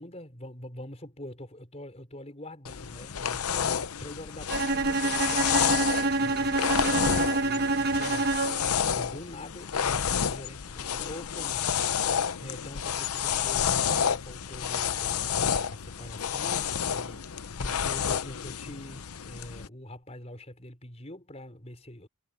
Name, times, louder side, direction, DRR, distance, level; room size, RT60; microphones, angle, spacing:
voice 1, 0.0-5.8 6.2-11.7 12.0-17.3 17.5-22.1, left 1 dB, 30° left, 4.7 m, -44 dB
sound 1, 2.7-19.7, left 8 dB, 90° left, 0.8 m, -30 dB
Bowed string instrument, 4.5-8.8, right 3 dB, 45° right, 1.2 m, -27 dB
head